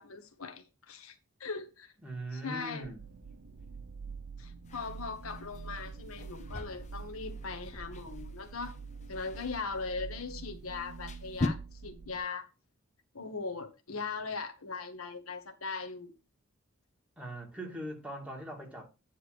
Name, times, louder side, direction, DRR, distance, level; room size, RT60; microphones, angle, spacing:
voice 1, 0.0-1.9 2.3-2.9 4.4-8.8 9.1-12.4 13.1-16.1, left 4 dB, 90° left, 1.4 m, -40 dB
voice 2, 2.0-3.0 17.2-18.9, right 1 dB, 5° right, 2.3 m, -41 dB
sound 1, 2.8-12.2, right 5 dB, 70° right, 0.9 m, -46 dB
sound 2, 4.6-11.5, left 2 dB, 35° left, 0.9 m, -42 dB
9.8 x 3.4 x 6.4 m
head